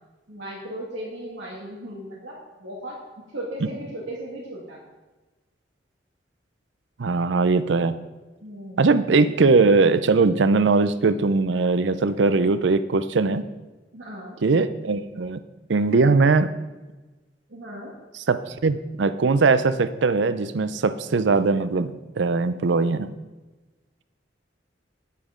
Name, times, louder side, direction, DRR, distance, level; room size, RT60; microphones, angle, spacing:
voice 1, 0.3-3.0 3.3-4.8 8.4-8.9 13.9-14.4 17.5-18.0, right 1 dB, 90° right, -6 dB, 2.0 m, -36 dB
voice 2, 7.0-7.9 8.8-13.4 14.4-15.4 15.7-16.5 18.3-23.1, right 4 dB, 70° right, 13 dB, 0.5 m, -20 dB
9.4 x 8.4 x 5.0 m, 1.2 s
head